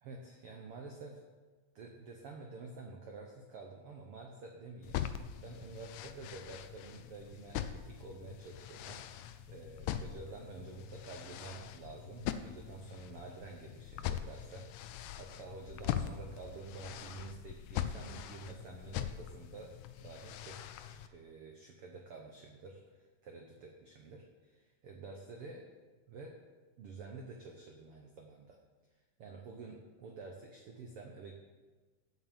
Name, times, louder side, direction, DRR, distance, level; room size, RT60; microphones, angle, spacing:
voice 1, 0.0-1.2 1.7-5.0 5.4-9.0 9.5-25.6 26.1-26.4 26.8-28.6 29.2-31.3, right 4 dB, 85° right, 2 dB, 1.2 m, -49 dB
sound 1, 4.8-21.1, left 10 dB, 85° left, 1.7 m, -42 dB
8.2 x 7.6 x 7.2 m, 1.3 s
omnidirectional pair, 4.0 m